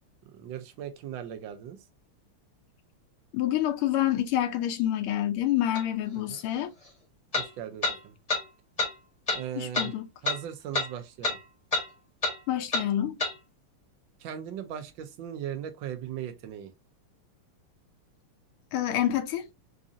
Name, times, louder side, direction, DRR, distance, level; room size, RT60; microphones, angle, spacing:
voice 1, 0.2-1.8 6.1-6.4 7.3-8.2 9.3-10.0 10.2-11.4 14.2-16.7, right 10 dB, 70° right, 1.2 m, -38 dB
voice 2, 3.3-6.7 9.6-10.1 12.5-13.2 18.7-19.5, left 12 dB, 80° left, 1.5 m, -27 dB
sound 1, 5.8-5.9 7.3-7.5 7.8-8.0 8.3-8.4 8.8-8.9 9.3-9.4 9.7-9.9 10.3-10.4 10.7-10.9 11.2-11.4 11.7-11.9 12.2-12.4 12.7-12.9 13.2-13.3, left 3 dB, 25° left, 0.9 m, -27 dB
4.9 x 2.6 x 2.6 m
omnidirectional pair, 2.4 m